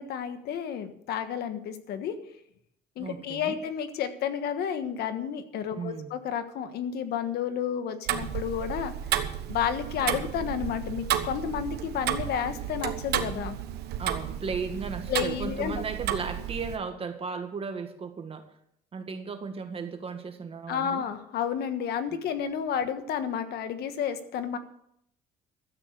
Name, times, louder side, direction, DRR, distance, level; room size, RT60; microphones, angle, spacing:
voice 1, 0.0-2.2 3.0-8.9 9.5-13.6 15.1-15.8 20.7-24.6, left 8 dB, 70° left, 9 dB, 1.4 m, -31 dB
voice 2, 3.0-3.6 5.7-6.1 14.0-18.4 18.9-21.0, right 5 dB, 35° right, 7 dB, 1.7 m, -35 dB
Tick-tock, 8.1-16.8, right 11 dB, 75° right, 1.1 m, -32 dB
13.0 x 8.6 x 6.7 m, 0.73 s
cardioid pair, 110°, 17 cm